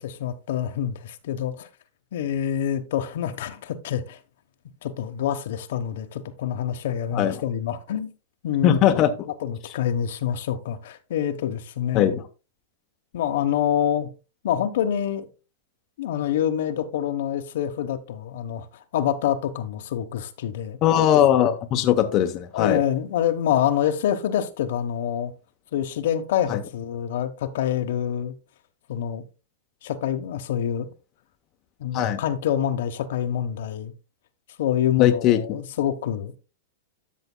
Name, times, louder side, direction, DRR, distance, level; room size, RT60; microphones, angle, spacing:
voice 1, 0.0-1.7 2.1-4.2 4.8-8.1 8.4-9.0 9.3-12.2 13.1-14.1 14.4-15.3 16.0-18.7 18.9-20.8 22.5-25.3 25.7-28.3 28.9-29.2 29.8-30.9 31.8-33.9 34.6-36.4, left 10 dB, 65° left, 1.0 m, -26 dB
voice 2, 8.6-9.1 11.9-12.2 20.8-22.8 26.5-26.6 31.9-32.2 35.0-35.4, left 11 dB, 35° left, 0.8 m, -19 dB
12.5 x 6.6 x 2.2 m
hypercardioid pair, 140°, 0 cm